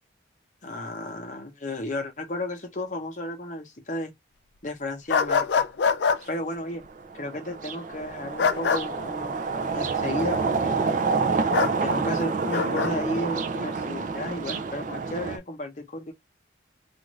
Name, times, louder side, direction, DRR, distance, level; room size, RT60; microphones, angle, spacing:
voice 1, 0.6-4.1 4.6-5.6 6.2-6.8 7.1-10.8 11.8-16.1, left 1 dB, 40° left, 0.8 m, -33 dB
sound 1, 5.1-6.2 8.4-8.8 11.5-11.7 12.5-12.9, left 6 dB, 65° left, 0.4 m, -23 dB
sound 2, 6.2-6.3 6.9-15.4, right 4 dB, 40° right, 0.4 m, -28 dB
2.5 x 2.5 x 3.0 m
head